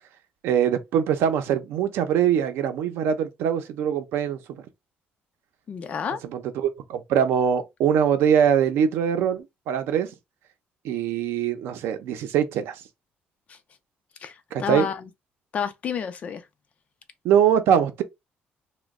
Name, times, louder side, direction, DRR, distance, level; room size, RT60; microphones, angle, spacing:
voice 1, 0.4-4.4 6.3-10.1 10.8-12.7 14.5-14.9 17.2-18.0, right 8 dB, 85° right, 0.6 m, -22 dB
voice 2, 5.7-6.2 13.5-13.6 14.2-15.1 15.5-16.4, left 7 dB, 35° left, 0.5 m, -30 dB
3.0 x 2.2 x 3.6 m
cardioid pair, 170°, 4 cm